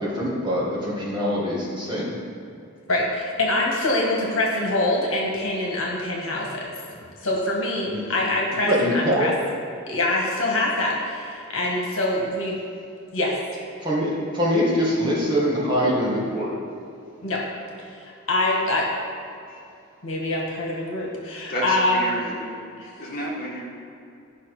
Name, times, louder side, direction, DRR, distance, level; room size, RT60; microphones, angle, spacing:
voice 1, 0.0-2.2 7.9-8.0 8.6-9.3 13.8-16.6, equal, 20° right, -6 dB, 1.9 m, -23 dB
voice 2, 2.9-6.7 7.2-9.3 9.9-12.6 13.1-13.4 17.2-17.4 17.8-18.9 20.0-22.2 22.8-22.9, left 2 dB, 65° left, -2 dB, 1.6 m, -24 dB
voice 3, 21.5-22.5 23.0-23.6, equal, 45° left, -4 dB, 1.9 m, -31 dB
11.5 x 5.8 x 4.9 m, 2.5 s
head